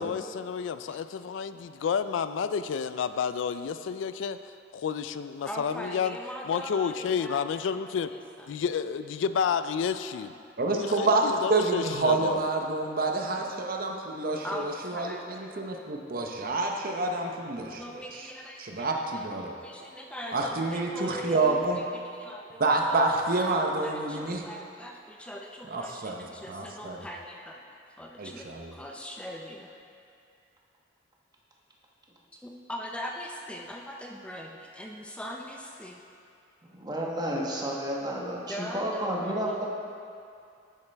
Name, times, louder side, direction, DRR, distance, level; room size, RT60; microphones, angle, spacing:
voice 1, 0.0-4.4 4.7-6.2 6.5-8.1 8.5-10.3 10.7-12.4, left 6 dB, 85° left, 11 dB, 0.3 m, -30 dB
voice 2, 5.4-8.5 14.4-15.5 17.8-22.8 23.1-27.6 28.0-28.5 28.7-29.7 32.4-36.0 38.5-39.7, equal, 5° left, 0 dB, 0.4 m, -41 dB
voice 3, 10.6-18.3 18.6-19.6 20.3-21.8 22.6-24.4 25.7-27.0 28.2-28.7, right 3 dB, 50° right, 2 dB, 0.8 m, -28 dB
voice 4, 36.6-39.7, right 1 dB, 20° right, -3 dB, 1.1 m, -31 dB
10.5 x 7.3 x 3.4 m, 2.5 s
head